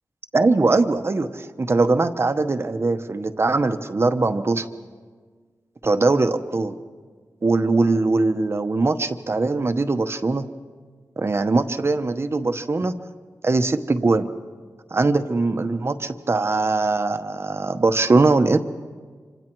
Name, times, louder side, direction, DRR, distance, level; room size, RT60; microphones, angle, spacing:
voice 1, 0.3-4.7 5.8-6.7 7.4-10.4 11.2-12.9 13.4-14.3 14.9-18.6, right 3 dB, 40° right, 9 dB, 1.0 m, -21 dB
26.0 x 26.0 x 4.6 m, 1.5 s
wide cardioid pair, 90°, 6 cm